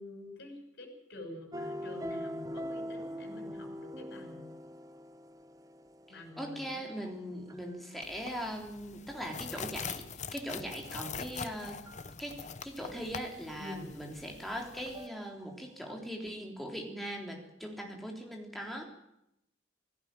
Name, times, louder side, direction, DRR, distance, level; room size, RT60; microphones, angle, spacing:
voice 1, 0.0-4.5 6.1-7.3 13.6-13.9, left 1 dB, 55° left, 3 dB, 6.7 m, -47 dB
sound 1, 1.5-7.8 11.0-11.5 11.9-12.1 14.9-15.5 15.9-16.0, equal, 20° right, 0.9 m, -43 dB
voice 2, 6.1-11.8 12.2-18.9, equal, ahead, 1 dB, 3.5 m, -40 dB
sound 2, 8.0-15.1, left 6 dB, 35° left, 0.8 m, -44 dB
17.5 x 16.5 x 9.1 m, 0.80 s
head